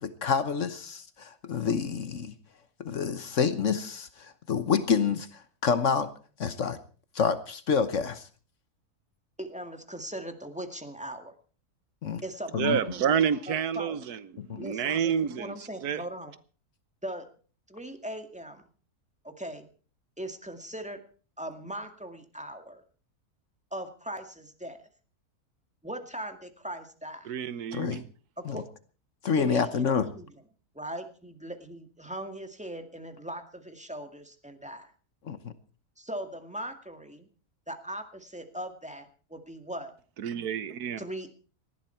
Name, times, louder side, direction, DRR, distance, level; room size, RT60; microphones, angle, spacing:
voice 1, 0.0-2.3 2.8-6.1 6.4-6.8 7.1-8.3 12.0-12.2 12.5-12.8 14.4-14.6 27.7-28.0 28.4-28.6 29.2-30.1 35.2-35.5, left 6 dB, 55° left, 1.3 m, -28 dB
voice 2, 9.4-11.3 12.2-14.0 14.6-16.3 17.0-17.3 17.7-18.6 19.2-19.7 20.2-21.0 21.4-22.8 23.7-24.8 25.8-27.3 28.4-28.6 29.4-30.3 30.7-34.9 36.0-37.3 37.7-39.9 41.0-41.3, right 1 dB, 5° right, 1.9 m, -39 dB
voice 3, 12.6-16.0 27.2-28.0 40.2-41.0, right 8 dB, 85° right, 1.5 m, -29 dB
19.5 x 14.5 x 4.5 m
omnidirectional pair, 1.6 m